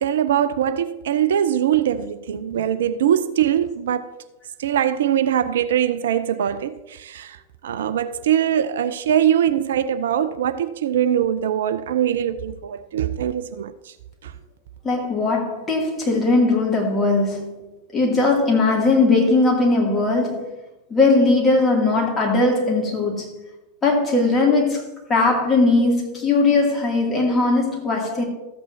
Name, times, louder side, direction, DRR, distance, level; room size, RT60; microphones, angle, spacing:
voice 1, 0.0-4.1 4.6-13.9 14.2-14.3, right 10 dB, 60° right, 0.4 m, -22 dB
voice 2, 14.8-17.5 17.9-20.5 20.9-23.3 23.8-28.2, left 3 dB, 15° left, 2.6 m, -19 dB
13.5 x 8.4 x 2.8 m
figure-of-eight pair, 90°, 0 cm